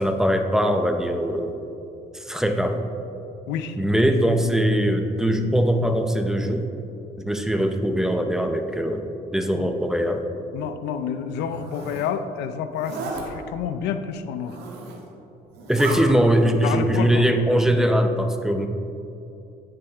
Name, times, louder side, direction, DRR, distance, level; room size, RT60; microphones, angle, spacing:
voice 1, 0.0-1.5 2.1-2.8 3.8-6.7 7.2-9.0 9.3-10.2 15.7-18.7, equal, 5° right, 5 dB, 0.6 m, -21 dB
voice 2, 10.5-14.6 16.6-17.2, left 8 dB, 85° left, 10 dB, 0.5 m, -29 dB
Zipper (clothing), 11.3-12.1 12.7-13.2 14.3-15.1 15.5-16.0, right 4 dB, 80° right, 1.4 m, -35 dB
9.2 x 6.7 x 3.5 m, 2.7 s
cardioid pair, 110°, 17 cm